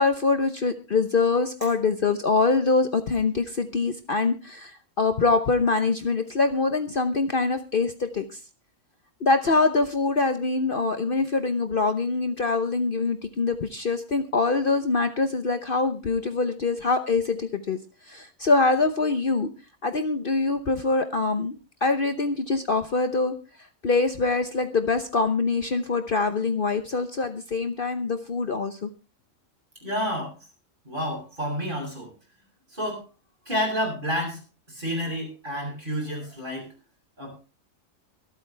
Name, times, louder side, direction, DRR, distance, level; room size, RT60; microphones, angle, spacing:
voice 1, 0.0-8.4 9.2-17.8 18.1-19.5 19.8-23.3 23.8-28.9, left 3 dB, 45° left, 8 dB, 1.1 m, -24 dB
voice 2, 29.8-30.3 30.9-32.1 32.7-33.1 33.5-34.4 34.7-36.7 37.2-37.3, equal, 40° right, 0 dB, 7.4 m, -29 dB
24.0 x 9.0 x 3.4 m, 0.31 s
omnidirectional pair, 1.4 m